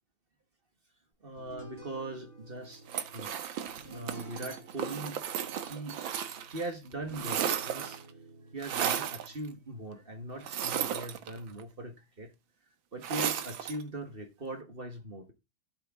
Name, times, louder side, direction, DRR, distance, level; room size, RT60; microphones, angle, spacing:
voice 1, 1.2-3.3 3.9-5.2 5.5-6.0 6.5-8.0 8.5-12.3 12.9-15.3, right 2 dB, 30° right, 1.5 m, -40 dB
sound 1, 1.4-12.0, right 3 dB, 15° right, 7.4 m, -53 dB
sound 2, 2.9-6.7 6.9-8.1 8.6-9.3 10.4-11.6 13.0-13.8, right 9 dB, 80° right, 1.8 m, -34 dB
12.5 x 6.6 x 3.6 m
omnidirectional pair, 2.1 m